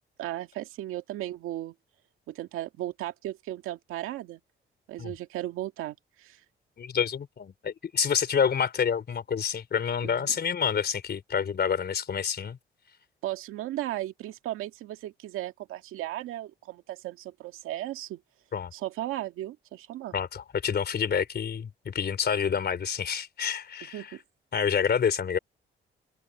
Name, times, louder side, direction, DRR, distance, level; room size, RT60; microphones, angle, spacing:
voice 1, 0.2-1.7 2.3-4.4 4.9-6.4 10.0-10.3 13.2-18.2 18.7-20.1 23.9-24.2, right 14 dB, 90° right, 2.0 m, -36 dB
voice 2, 6.8-12.6 18.5-18.7 20.1-24.2 24.5-25.4, left 7 dB, 50° left, 3.9 m, -28 dB
open air
cardioid pair, 80°, 21 cm